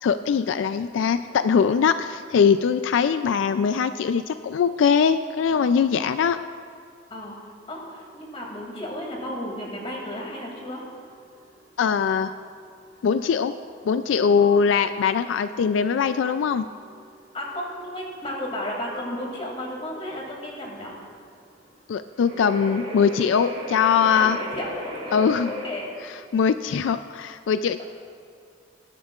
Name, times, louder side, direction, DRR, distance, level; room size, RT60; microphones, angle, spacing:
voice 1, 0.0-6.4 11.8-12.3 13.0-13.5 13.8-16.7 21.9-24.4 25.1-25.5 26.3-27.8, left 6 dB, 85° left, 11 dB, 0.3 m, -21 dB
voice 2, 7.1-10.8 14.4-14.5 17.3-20.9 24.1-25.9 26.6-26.8 27.8-27.9, left 1 dB, 30° left, -2 dB, 2.4 m, -34 dB
sound 1, 7.8-25.7, left 1 dB, 35° right, 3.0 m, -40 dB
20.0 x 11.0 x 2.4 m, 2.3 s
head